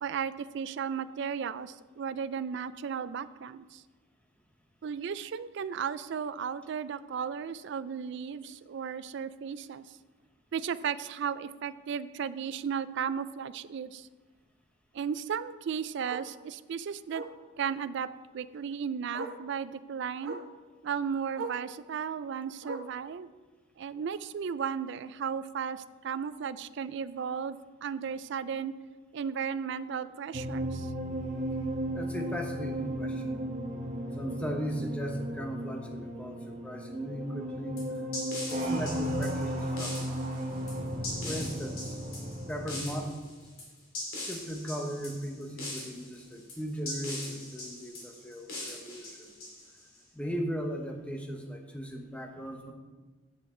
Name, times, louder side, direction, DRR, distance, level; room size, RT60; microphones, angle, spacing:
voice 1, 0.0-3.8 4.8-10.0 10.5-14.1 14.9-17.2 17.6-18.1 18.3-20.4 20.8-23.3 23.8-28.8 29.1-30.9, right 7 dB, 60° right, 15 dB, 0.3 m, -35 dB
Bark, 9.6-9.8 10.2-10.3 10.7-10.8 11.0-11.1 12.5-12.6 15.1-15.2 16.1-16.3 17.1-17.4 18.6-18.7 19.1-19.5 20.2-20.5 21.3-21.7 22.6-23.0 24.0-24.1, right 3 dB, 90° right, 0.9 m, -40 dB
sound 1, 30.3-43.1, right 1 dB, 35° right, 1.3 m, -35 dB
voice 2, 31.9-33.4 34.1-37.8 38.5-40.2 41.3-41.9 42.5-43.1 44.2-49.3 50.1-52.7, equal, 5° left, 3 dB, 0.9 m, -37 dB
sound 2, 37.8-50.0, left 1 dB, 90° left, 2.9 m, -41 dB
10.0 x 7.7 x 3.8 m, 1.3 s
head